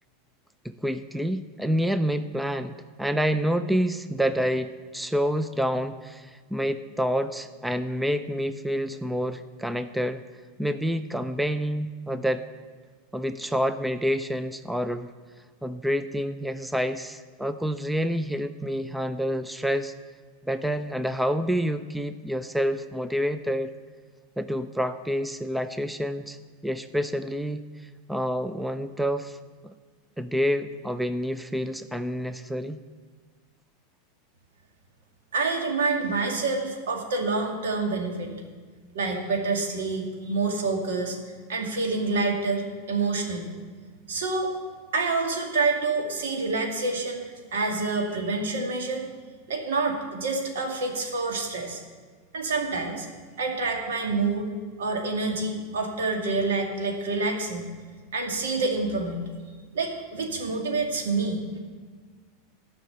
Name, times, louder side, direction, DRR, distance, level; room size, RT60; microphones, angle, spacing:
voice 1, 0.6-10.2 10.6-12.4 13.1-15.1 15.6-19.9 20.4-23.7 24.4-26.4 26.6-29.4 29.6-29.7 30.2-32.8, equal, 5° right, 11 dB, 0.5 m, -28 dB
voice 2, 35.3-38.3 38.9-41.2 41.5-42.6 42.9-43.5 44.1-44.5 44.9-49.1 49.5-51.8 52.3-53.1 53.4-54.5 54.8-57.7 58.1-61.4, right 3 dB, 85° right, 2 dB, 2.2 m, -27 dB
12.0 x 5.8 x 8.0 m, 1.5 s
hypercardioid pair, 110°, 0 cm